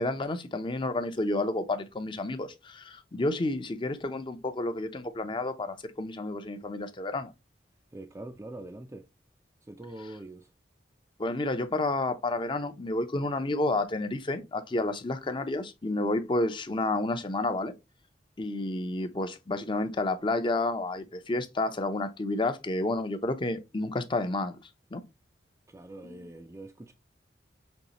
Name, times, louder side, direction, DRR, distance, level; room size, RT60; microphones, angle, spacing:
voice 1, 0.0-7.3 11.2-17.7 18.4-24.6 24.9-25.0 26.0-26.3, left 2 dB, 30° left, 0.6 m, -30 dB
voice 2, 7.9-9.1 9.7-10.5 25.7-26.9, right 2 dB, 15° right, 0.4 m, -43 dB
5.4 x 3.1 x 2.9 m
head